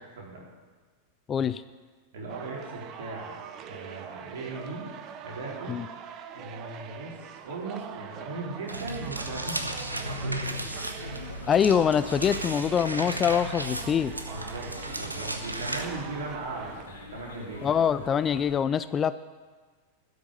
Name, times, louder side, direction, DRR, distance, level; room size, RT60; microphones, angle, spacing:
voice 1, 1.3-1.6 5.7-5.9 11.5-14.1 17.6-19.2, left 8 dB, 25° left, 14 dB, 0.4 m, -24 dB
voice 2, 2.1-4.9 5.2-5.8 6.3-10.4 10.7-10.8 14.3-14.7 15.0-17.7, right 3 dB, 60° right, -3 dB, 4.0 m, -38 dB
sound 1, 2.3-16.8, right 8 dB, 35° right, 0.9 m, -43 dB
sound 2, 8.7-15.9, right 1 dB, 85° right, 1.0 m, -35 dB
sound 3, 11.0-18.6, left 5 dB, 65° left, 2.4 m, -45 dB
12.5 x 6.6 x 9.6 m, 1.4 s
figure-of-eight pair, 90°, 0 cm